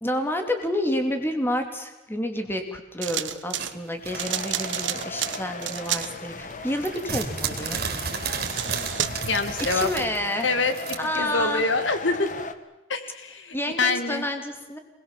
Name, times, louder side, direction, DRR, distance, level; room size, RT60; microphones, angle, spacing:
voice 1, 0.0-7.8 9.7-10.5 11.0-11.7 13.5-14.8, left 1 dB, 10° left, 5 dB, 2.9 m, -29 dB
sound 1, 3.0-3.7 4.1-6.1 8.2-9.4, right 11 dB, 75° right, 1.3 m, -30 dB
sound 2, 3.6-5.6 6.0-11.0, right 5 dB, 55° right, 3.9 m, -32 dB
sound 3, 4.1-12.5, left 3 dB, 40° left, 1.7 m, -38 dB
voice 2, 9.2-9.9 10.4-12.3 12.9-14.3, left 3 dB, 80° left, 9 dB, 2.4 m, -26 dB
27.0 x 21.0 x 7.5 m, 1.1 s
head